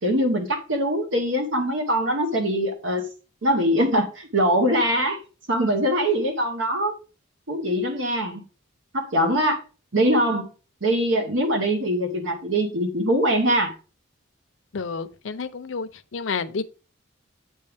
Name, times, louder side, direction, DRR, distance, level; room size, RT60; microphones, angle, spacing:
voice 1, 0.0-3.1 3.4-5.2 5.5-7.0 7.5-8.4 8.9-9.6 9.9-10.5 10.8-13.8, equal, 70° right, 1.1 m, -22 dB
voice 2, 14.7-16.6, left 5 dB, 75° left, 0.6 m, -30 dB
8.2 x 5.4 x 3.4 m
head